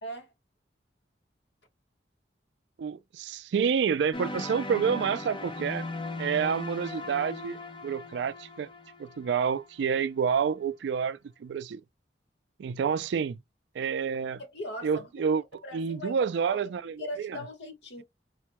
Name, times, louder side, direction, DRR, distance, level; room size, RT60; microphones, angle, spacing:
voice 1, 0.0-0.3 14.4-15.1 15.6-16.7 17.0-18.0, equal, 80° left, 1.2 m, -39 dB
voice 2, 2.8-5.9 6.2-8.7 9.0-11.8 12.6-13.4 13.8-14.4 14.8-15.4 15.7-17.4, right 6 dB, 75° right, 0.3 m, -29 dB
sound 1, 4.1-10.0, left 2 dB, 30° left, 0.6 m, -38 dB
4.3 x 2.2 x 2.9 m
head